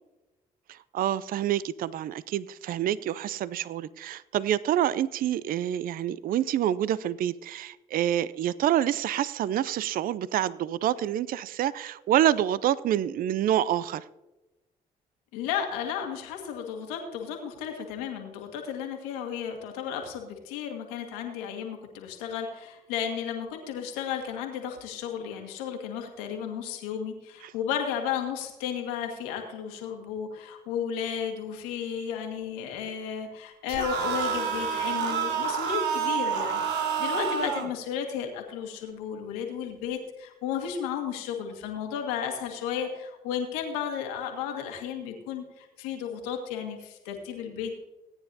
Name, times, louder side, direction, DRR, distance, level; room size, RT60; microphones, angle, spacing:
voice 1, 0.7-14.0 27.4-27.5, right 11 dB, 55° right, 0.4 m, -27 dB
voice 2, 15.3-47.7, left 8 dB, 80° left, 1.8 m, -33 dB
sound 1, 33.7-37.7, right 7 dB, 70° right, 1.4 m, -28 dB
18.0 x 9.7 x 2.7 m
hypercardioid pair, 50°, 18 cm